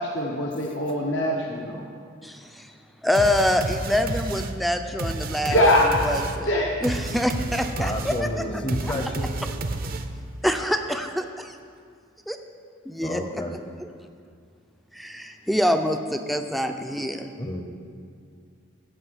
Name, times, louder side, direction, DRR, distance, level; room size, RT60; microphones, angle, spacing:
voice 1, 0.0-1.9 5.5-5.9 6.5-6.7, left 1 dB, 60° left, -1 dB, 1.0 m, -22 dB
voice 2, 2.2-2.7 3.0-5.6 6.0-6.5 6.8-8.4 10.4-11.5 12.3-12.4 12.9-13.4 14.9-17.3, left 1 dB, ahead, 6 dB, 0.5 m, -25 dB
sound 1, 3.1-10.3, right 2 dB, 45° right, 0.6 m, -31 dB
voice 3, 7.8-9.3 13.0-13.5 17.4-17.6, left 1 dB, 25° left, 4 dB, 0.9 m, -30 dB
15.0 x 5.2 x 8.0 m, 2.2 s
head